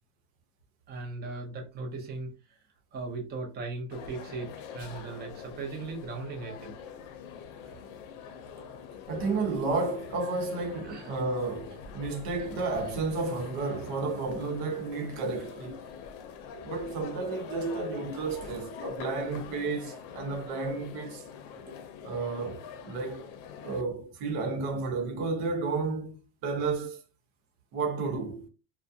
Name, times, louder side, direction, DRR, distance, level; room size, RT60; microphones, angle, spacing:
voice 1, 0.9-2.6 2.9-6.8 10.8-11.1 18.4-18.6 21.7-21.8, right 3 dB, 20° right, 0.5 m, -38 dB
sound 1, 3.9-23.8, left 7 dB, 90° left, 0.6 m, -44 dB
voice 2, 9.1-15.8 16.6-21.2 22.0-23.2 23.6-27.0 27.7-28.5, right 3 dB, 80° right, 0.9 m, -32 dB
2.4 x 2.2 x 2.6 m
cardioid pair, 145°, 49 cm